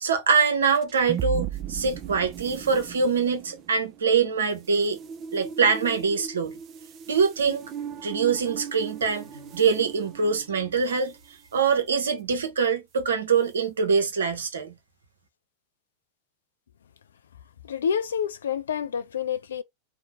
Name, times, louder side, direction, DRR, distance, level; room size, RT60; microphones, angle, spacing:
voice 1, 0.0-5.0 5.3-6.6 7.1-7.6 8.0-11.1 11.5-14.7, right 5 dB, 65° right, 0.6 m, -24 dB
sound 1, 0.7-11.2, right 10 dB, 35° right, 0.3 m, -37 dB
voice 2, 17.7-19.6, left 7 dB, 65° left, 0.3 m, -28 dB
2.6 x 2.1 x 2.9 m
figure-of-eight pair, 90°, 0 cm